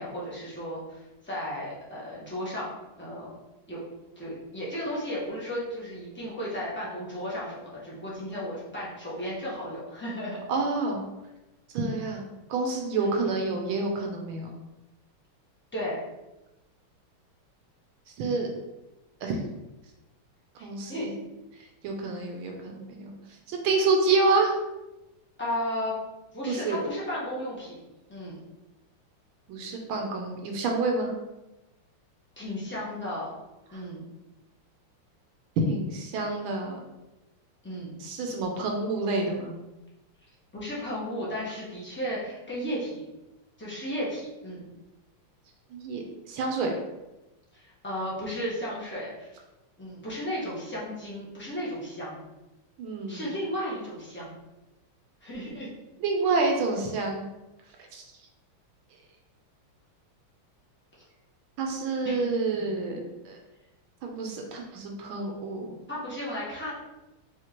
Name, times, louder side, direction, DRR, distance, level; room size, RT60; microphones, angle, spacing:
voice 1, 0.0-2.7 3.0-3.3 3.7-3.8 4.2-10.4 13.0-13.1 15.7-16.0 20.6-21.1 25.4-26.0 26.3-27.8 28.1-28.4 32.4-33.3 33.7-34.0 37.6-37.9 40.5-43.0 43.6-44.6 47.5-49.4 49.8-52.2 53.1-54.3 55.2-55.7 62.0-62.3 65.9-66.7, equal, 10° left, -7 dB, 0.7 m, -34 dB
voice 2, 10.5-11.0 11.7-12.2 12.5-14.5 18.2-18.5 19.2-19.4 20.6-21.2 21.8-23.1 23.5-24.5 26.5-26.8 29.5-31.1 33.7-33.8 35.6-36.8 38.0-39.5 45.7-46.7 52.8-53.3 56.0-57.3 57.9-58.0 61.6-63.0 63.2-63.4 64.0-65.7, right 3 dB, 75° right, 2 dB, 1.4 m, -28 dB
4.9 x 3.2 x 2.9 m, 1.0 s
omnidirectional pair, 2.4 m